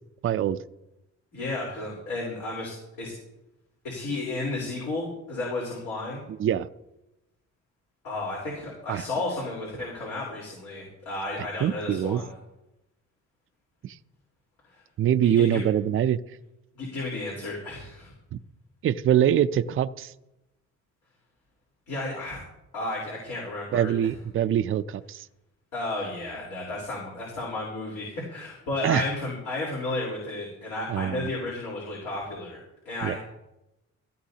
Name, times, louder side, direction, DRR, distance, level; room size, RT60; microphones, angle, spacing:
voice 1, 0.2-0.6 6.4-6.7 8.9-9.0 11.6-12.2 13.8-14.0 15.0-16.2 18.3-18.4 18.8-20.1 23.7-25.3 28.8-29.0 30.9-31.3 33.0-33.2, right 10 dB, 45° right, 11 dB, 0.5 m, -24 dB
voice 2, 1.3-3.1 3.8-6.2 8.0-12.3 14.7-14.8 15.2-15.6 16.8-18.1 21.9-22.4 22.7-23.9 25.7-33.2, left 2 dB, 80° left, -5 dB, 4.1 m, -33 dB
16.0 x 12.0 x 2.8 m, 0.92 s
cardioid pair, 90°, 30 cm